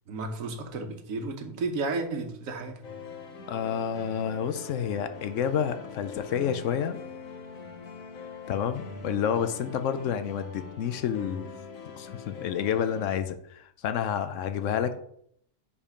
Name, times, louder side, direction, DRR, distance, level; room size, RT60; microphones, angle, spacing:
voice 1, 0.1-2.8, right 3 dB, 85° right, 1.3 m, -33 dB
sound 1, 2.8-13.0, left 5 dB, 85° left, 1.4 m, -43 dB
voice 2, 3.5-7.0 8.5-11.5 12.0-15.0, left 8 dB, 70° left, 0.9 m, -29 dB
5.2 x 4.9 x 5.0 m
omnidirectional pair, 1.4 m